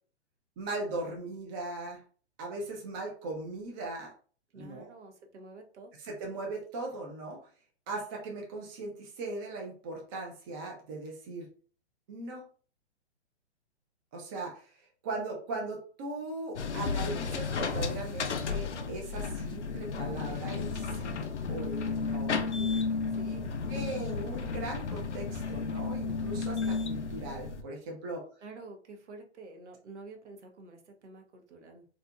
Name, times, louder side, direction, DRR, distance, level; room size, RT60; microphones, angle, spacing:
voice 1, 0.6-2.0 2.4-4.1 4.5-4.9 6.0-7.4 7.9-11.5 12.1-12.5 14.1-22.4 23.7-28.3, right 2 dB, 20° right, 0 dB, 0.4 m, -39 dB
voice 2, 4.5-5.9 22.5-23.5 28.4-31.9, right 3 dB, 80° right, 4 dB, 0.8 m, -49 dB
sound 1, 16.6-27.6, left 4 dB, 90° left, 0.5 m, -33 dB
2.8 x 2.4 x 2.3 m, 0.42 s
hypercardioid pair, 125°, 34 cm